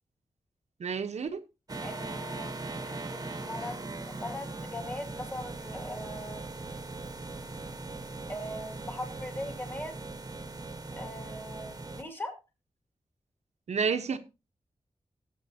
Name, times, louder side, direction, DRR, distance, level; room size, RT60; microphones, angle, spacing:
voice 1, 0.8-1.4 13.7-14.2, right 6 dB, 85° right, 1.1 m, -30 dB
sound 1, 1.7-12.0, right 3 dB, 35° right, 1.1 m, -40 dB
voice 2, 1.8-6.5 8.3-10.0 11.0-12.3, left 1 dB, 20° left, 2.5 m, -40 dB
19.5 x 7.5 x 2.8 m
wide cardioid pair, 115°, 11 cm